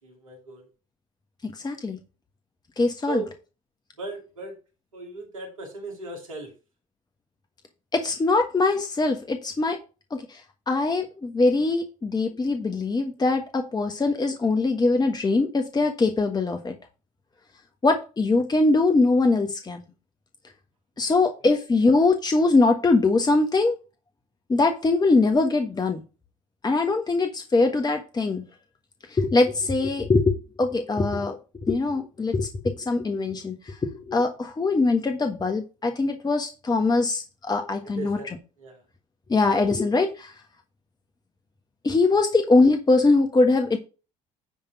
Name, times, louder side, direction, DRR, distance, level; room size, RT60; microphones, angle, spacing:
voice 1, 0.0-0.7 3.1-3.3 4.0-4.6 4.9-6.5 21.0-21.2 38.0-38.8, right 4 dB, 90° right, 0 dB, 2.5 m, -37 dB
voice 2, 1.4-2.0 2.8-3.2 7.9-9.8 10.1-16.7 17.8-19.8 21.0-23.8 24.5-26.0 26.6-28.4 29.1-38.2 39.3-40.3 41.8-43.8, left 3 dB, 25° left, 5 dB, 1.4 m, -22 dB
10.5 x 3.5 x 6.0 m, 0.32 s
hypercardioid pair, 60°, 17 cm